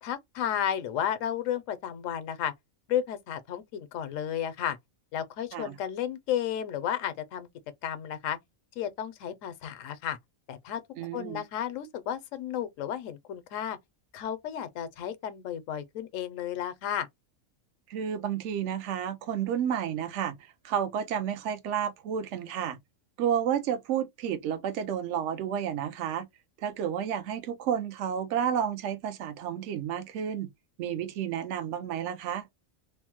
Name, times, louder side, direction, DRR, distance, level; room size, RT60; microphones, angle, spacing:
voice 1, 0.0-2.5 2.9-4.8 5.1-7.5 7.8-8.4 8.8-10.2 10.5-10.8 11.1-13.8 14.1-17.1, left 10 dB, 75° left, 0.9 m, -33 dB
voice 2, 11.0-11.4 17.9-22.8 23.2-26.3 26.6-30.5 30.8-32.5, right 9 dB, 65° right, 0.9 m, -31 dB
3.2 x 2.0 x 2.9 m
omnidirectional pair, 1.4 m